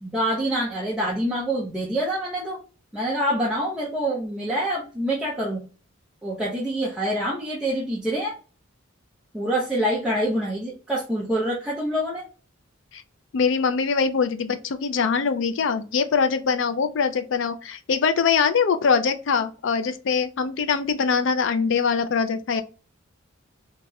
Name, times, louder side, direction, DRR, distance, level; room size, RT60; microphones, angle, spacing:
voice 1, 0.0-2.6 2.9-5.6 6.2-8.3 9.3-12.2, right 1 dB, 5° right, 0.6 m, -26 dB
voice 2, 13.3-22.6, left 5 dB, 60° left, 0.4 m, -23 dB
2.9 x 2.8 x 2.2 m
head